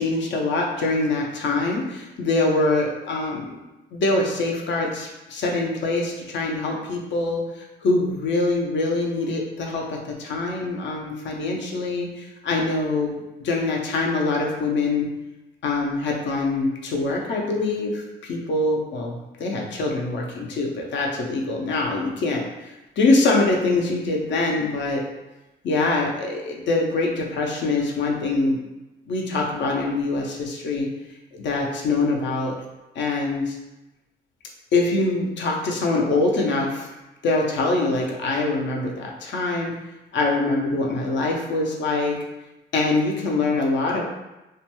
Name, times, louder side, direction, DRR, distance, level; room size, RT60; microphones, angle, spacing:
voice 1, 0.0-3.6 3.9-7.4 7.8-13.1 13.4-15.1 15.6-25.0 25.6-28.6 29.1-30.9 31.3-32.5 33.0-33.5 34.7-36.9 37.2-39.8 40.1-42.2 42.7-44.0, left 2 dB, 65° left, 0 dB, 0.6 m, -24 dB
2.5 x 2.2 x 2.9 m, 1.0 s
cardioid pair, 90°, 20 cm